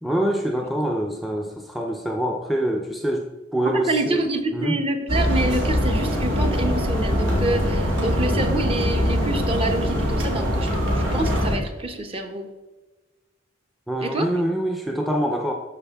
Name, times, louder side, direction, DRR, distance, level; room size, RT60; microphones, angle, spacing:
voice 1, 0.0-4.3 4.5-4.8 13.9-15.5, right 1 dB, ahead, 2 dB, 0.6 m, -25 dB
voice 2, 3.6-12.5 14.0-14.3, right 2 dB, 30° right, 5 dB, 0.9 m, -27 dB
sound 1, 5.1-11.6, equal, 90° right, 2.2 m, -22 dB
12.5 x 4.5 x 3.5 m, 1.2 s
head